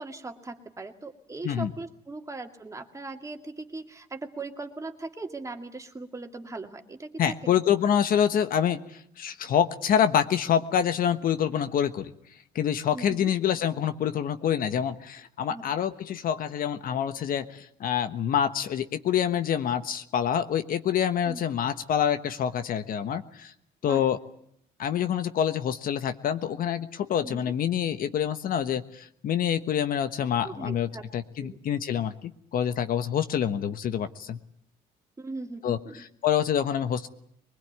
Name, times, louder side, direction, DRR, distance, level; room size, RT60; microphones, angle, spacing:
voice 1, 0.0-7.1 7.4-7.6 12.9-13.3 15.5-15.6 21.2-21.4 23.8-24.0 27.2-27.5 30.4-31.1 31.4-31.6 35.2-36.0, right 3 dB, 20° right, 5 dB, 2.4 m, -39 dB
voice 2, 7.2-12.1 12.5-23.5 23.8-24.2 24.8-34.4 35.6-37.1, left 9 dB, 60° left, 10 dB, 1.3 m, -26 dB
23.0 x 20.5 x 9.5 m, 0.70 s
cardioid pair, 110°, 17 cm